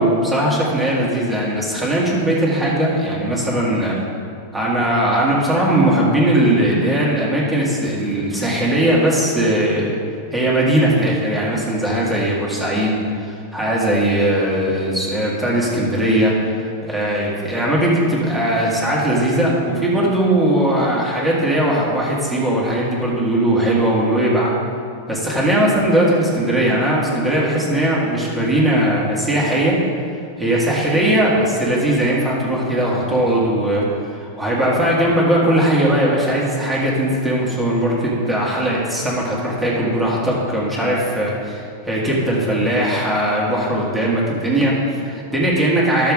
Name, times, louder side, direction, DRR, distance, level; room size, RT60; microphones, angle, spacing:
voice 1, 0.0-4.0 4.5-9.9 10.3-16.3 16.8-24.5 25.1-29.8 30.4-46.1, right 1 dB, 5° right, -5 dB, 1.8 m, -19 dB
12.0 x 6.7 x 3.6 m, 2.3 s
supercardioid pair, 150°, 0 cm